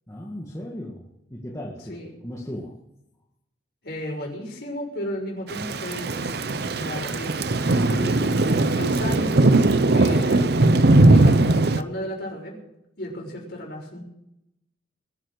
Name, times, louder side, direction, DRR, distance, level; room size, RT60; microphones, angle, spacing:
voice 1, 0.1-2.0 2.2-2.7, left 1 dB, 15° left, -3 dB, 2.0 m, -36 dB
voice 2, 3.8-9.5 9.8-10.6 11.0-12.5 13.0-14.0, equal, 55° left, 0 dB, 6.1 m, -34 dB
Thunder / Rain, 5.5-11.8, right 2 dB, 60° right, 0.7 m, -19 dB
21.5 x 9.1 x 6.5 m, 0.84 s
head